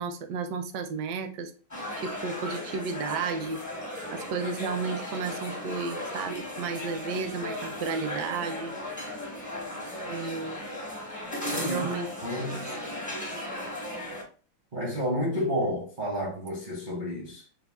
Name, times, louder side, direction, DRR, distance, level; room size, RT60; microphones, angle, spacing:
voice 1, 0.0-1.5 2.0-3.6 4.1-9.0 10.1-10.6 11.7-12.1, right 5 dB, 70° right, 1.0 m, -33 dB
sound 1, 1.7-14.2, left 1 dB, 20° left, 0.5 m, -36 dB
voice 2, 11.5-11.9 12.2-12.8 14.7-17.5, equal, 50° right, 0.5 m, -31 dB
4.2 x 2.4 x 3.4 m
omnidirectional pair, 2.3 m